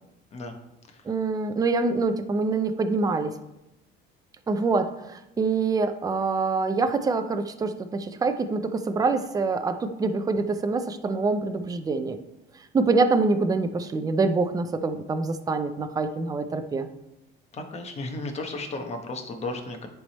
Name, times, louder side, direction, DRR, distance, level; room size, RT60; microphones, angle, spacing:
voice 1, 1.1-3.3 4.5-12.2 12.7-16.9, right 3 dB, 15° right, 8 dB, 0.5 m, -25 dB
voice 2, 17.5-19.9, left 2 dB, 30° left, 5 dB, 1.0 m, -34 dB
10.0 x 3.5 x 4.1 m, 0.92 s
cardioid pair, 135°, 21 cm